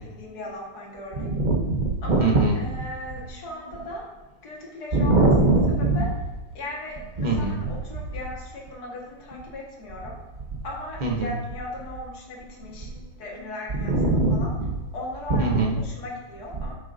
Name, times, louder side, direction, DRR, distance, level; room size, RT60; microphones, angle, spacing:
voice 1, 0.0-1.3 2.0-4.0 4.4-5.3 5.8-6.1 6.5-10.2 10.6-12.9 13.2-14.0 14.3-14.5 14.9-16.7, left 1 dB, 50° left, -3 dB, 2.3 m, -37 dB
voice 2, 1.1-2.6 4.9-6.0 7.2-7.7 11.0-11.3 13.0-13.1 13.7-14.7 15.3-15.8, right 2 dB, 35° right, 0 dB, 0.7 m, -21 dB
10.0 x 7.6 x 2.7 m, 1.2 s
omnidirectional pair, 2.2 m